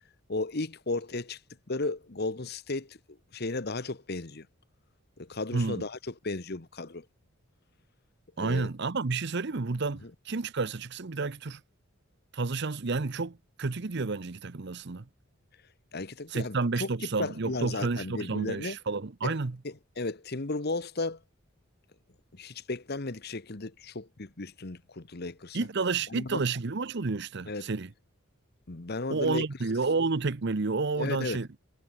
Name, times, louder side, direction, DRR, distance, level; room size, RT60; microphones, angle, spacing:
voice 1, 0.3-1.4 1.7-4.5 5.2-7.0 8.4-8.7 10.0-10.1 15.9-16.9 17.2-18.8 19.2-19.4 19.6-21.2 22.3-25.6 26.1-26.4 27.5-27.7 28.7-29.4 31.0-31.4, left 2 dB, 50° left, 1.1 m, -34 dB
voice 2, 5.5-5.8 8.4-11.6 12.3-15.0 16.3-19.6 25.5-27.9 29.1-31.5, right 3 dB, 55° right, 0.8 m, -30 dB
head